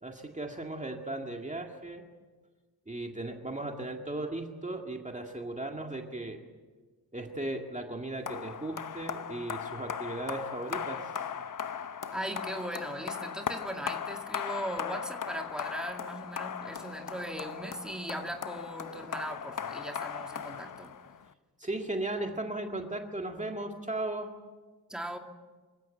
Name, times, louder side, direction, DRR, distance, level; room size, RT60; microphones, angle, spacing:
voice 1, 0.0-2.0 2.9-6.4 7.1-11.1 21.6-24.3, right 2 dB, 20° right, 2 dB, 2.0 m, -36 dB
sound 1, 8.3-21.3, left 7 dB, 50° left, 0.9 m, -38 dB
voice 2, 12.1-20.9 24.9-25.2, right 1 dB, ahead, 3 dB, 2.2 m, -39 dB
26.5 x 16.0 x 9.0 m, 1.4 s
wide cardioid pair, 105°, 39 cm